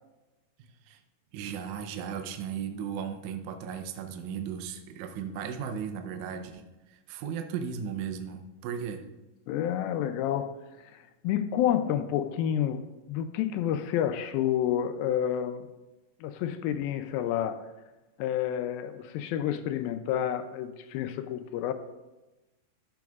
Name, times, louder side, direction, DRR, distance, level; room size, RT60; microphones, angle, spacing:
voice 1, 1.3-9.0, right 7 dB, 85° right, 1.7 m, -36 dB
voice 2, 9.5-10.6 10.8-15.6 16.2-17.7 18.2-21.7, left 10 dB, 80° left, 2.3 m, -29 dB
14.0 x 7.0 x 2.4 m
omnidirectional pair, 4.4 m